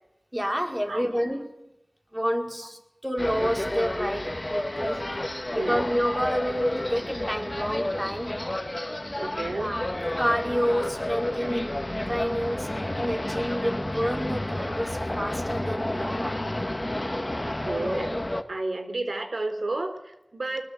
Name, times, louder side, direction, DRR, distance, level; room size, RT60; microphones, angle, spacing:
voice 1, 0.3-1.5 2.1-5.1 5.5-8.4 9.6-9.8 10.2-11.8 12.1-16.4, equal, 15° right, 3 dB, 5.3 m, -29 dB
sound 1, 3.2-18.4, left 1 dB, 25° left, 2.0 m, -30 dB
voice 2, 5.5-5.8 9.2-9.8 17.4-20.6, right 2 dB, 85° right, 8 dB, 3.8 m, -32 dB
24.5 x 21.0 x 9.0 m, 0.84 s
wide cardioid pair, 40°, 0 cm